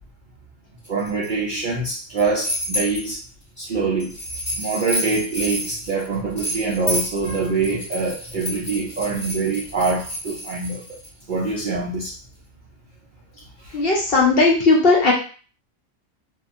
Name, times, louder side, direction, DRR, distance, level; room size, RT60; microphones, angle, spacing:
sound 1, 0.8-1.3 1.9-3.1 4.0-11.1, equal, 20° left, 1.3 m, -30 dB
voice 1, 0.9-3.2 3.6-4.2 4.6-10.8 11.3-12.1 13.6-13.8, right 3 dB, 60° right, -5 dB, 0.5 m, -24 dB
voice 2, 13.7-15.1, left 3 dB, 60° left, -2 dB, 0.7 m, -16 dB
2.8 x 2.3 x 2.4 m, 0.39 s
omnidirectional pair, 1.4 m